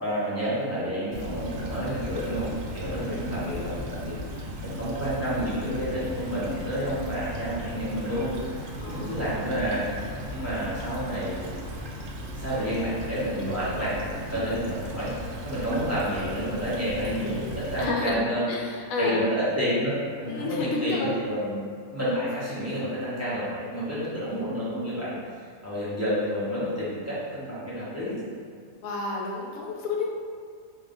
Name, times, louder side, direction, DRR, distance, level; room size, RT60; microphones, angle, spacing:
voice 1, 0.0-4.2 4.6-11.5 12.3-18.5 19.0-21.5 21.9-25.1 25.6-28.1, equal, 15° right, -10 dB, 0.9 m, -29 dB
Stream / Trickle dribble, 1.1-17.9, equal, 65° right, 0.9 m, -37 dB
voice 2, 2.9-3.3 8.8-9.6 14.3-14.6 17.8-19.3 20.3-21.2 24.1-24.5 28.8-30.1, left 3 dB, 75° left, -1 dB, 1.0 m, -31 dB
4.4 x 2.2 x 3.8 m, 2.1 s
omnidirectional pair, 1.5 m